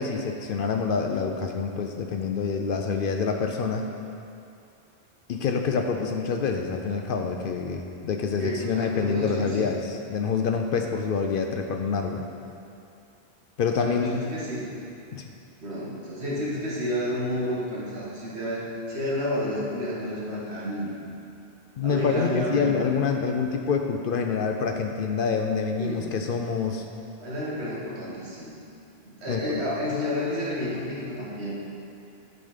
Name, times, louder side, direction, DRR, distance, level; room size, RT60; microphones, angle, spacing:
voice 1, 0.0-3.8 5.3-12.2 13.6-14.2 15.1-15.3 21.8-26.9 29.3-29.6, left 5 dB, 60° left, 4 dB, 0.6 m, -27 dB
voice 2, 8.4-9.7 13.7-14.7 15.6-21.0 21.8-22.8 25.8-26.1 27.2-28.6 29.1-31.5, left 1 dB, 75° right, -6 dB, 1.9 m, -30 dB
10.5 x 4.0 x 5.0 m, 2.6 s
omnidirectional pair, 1.1 m